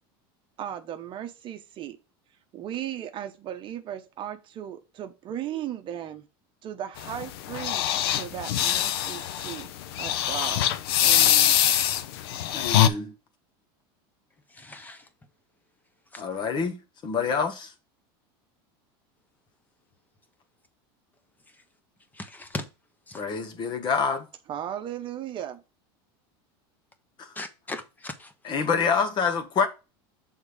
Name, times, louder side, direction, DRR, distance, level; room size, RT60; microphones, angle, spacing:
voice 1, 0.6-2.0 2.5-6.3 6.6-7.8 8.1-9.7 10.0-10.7 11.0-11.6 24.5-25.6, right 10 dB, 40° right, 0.8 m, -36 dB
sound 1, 7.0-12.9, left 11 dB, 75° left, 0.7 m, -23 dB
voice 2, 12.5-13.1 16.2-17.7 23.1-24.3 27.2-27.3 28.4-29.7, left 5 dB, 35° left, 1.2 m, -27 dB
voice 3, 14.5-15.1 16.1-16.2 21.5-21.6 22.1-22.6 23.1-23.2 27.3-28.3, left 2 dB, 15° left, 1.0 m, -39 dB
6.4 x 3.6 x 4.9 m
supercardioid pair, 115°, 13 cm